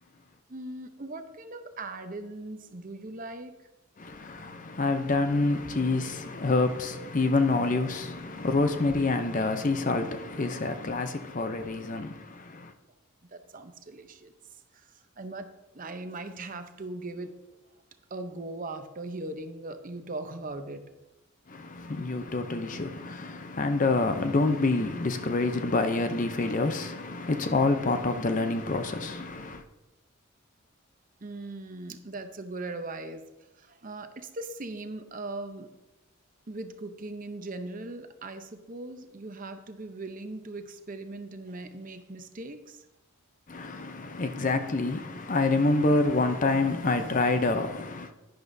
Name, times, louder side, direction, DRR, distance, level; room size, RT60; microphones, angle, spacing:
voice 1, 0.5-3.5 13.3-14.3 14.7-15.5 15.7-17.3 18.1-20.9 31.2-33.2 33.6-35.7 36.5-42.8, right 2 dB, 40° right, 0.7 m, -39 dB
voice 2, 4.0-12.7 21.5-29.6 43.5-48.1, left 3 dB, 35° left, 0.6 m, -27 dB
11.0 x 10.5 x 2.7 m
head